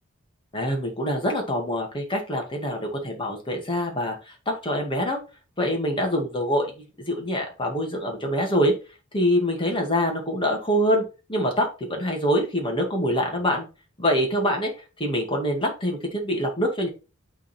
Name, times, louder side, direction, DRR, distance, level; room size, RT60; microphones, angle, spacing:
voice 1, 0.5-5.2 5.6-6.7 7.1-8.7 9.1-11.0 11.3-13.6 14.0-14.7 15.0-16.9, equal, 25° left, 1 dB, 2.1 m, -25 dB
10.0 x 4.0 x 4.4 m, 0.31 s
head